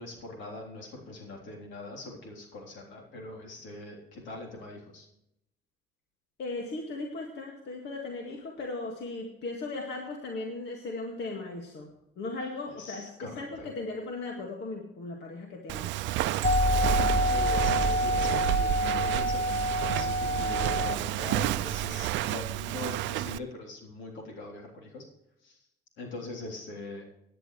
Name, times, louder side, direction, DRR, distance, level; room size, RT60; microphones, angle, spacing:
voice 1, 0.0-5.1 12.8-13.3 13.6-13.7 16.6-19.5 19.8-25.1 25.4-25.6 26.0-27.1, left 2 dB, 85° left, 0 dB, 3.6 m, -42 dB
voice 2, 6.4-11.9 12.2-16.0, left 3 dB, 70° left, 1 dB, 2.0 m, -37 dB
Walk footsteps, 15.7-23.4, right 14 dB, 85° right, 0.5 m, -31 dB
sound 1, 16.4-21.0, equal, 35° left, 1.0 m, -27 dB
17.5 x 10.0 x 3.3 m, 0.82 s
cardioid pair, 80°, 19 cm